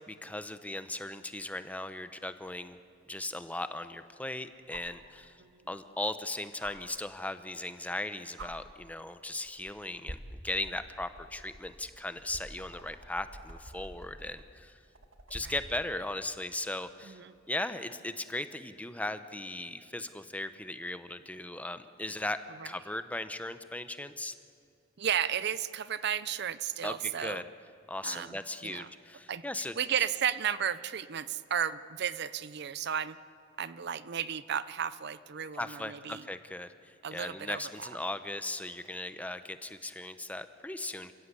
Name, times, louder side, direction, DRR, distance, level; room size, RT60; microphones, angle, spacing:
voice 1, 0.1-2.8 3.1-5.4 5.7-10.2 10.4-14.7 15.3-17.2 17.5-22.4 22.6-24.3 26.8-27.4 27.9-29.8 35.5-41.1, left 2 dB, 10° left, 11 dB, 0.7 m, -38 dB
sound 1, 4.7-5.0 6.6-6.7 7.9-8.0 8.4-8.5 9.4-9.7 10.1-15.7 17.4-17.5, right 1 dB, 80° right, 1.8 m, -47 dB
voice 2, 25.0-27.4 28.0-28.4 28.6-28.9 29.3-29.4 29.8-33.2 33.6-36.2 37.0-37.9, right 8 dB, 55° right, 16 dB, 0.6 m, -33 dB
28.0 x 16.0 x 8.3 m, 2.4 s
head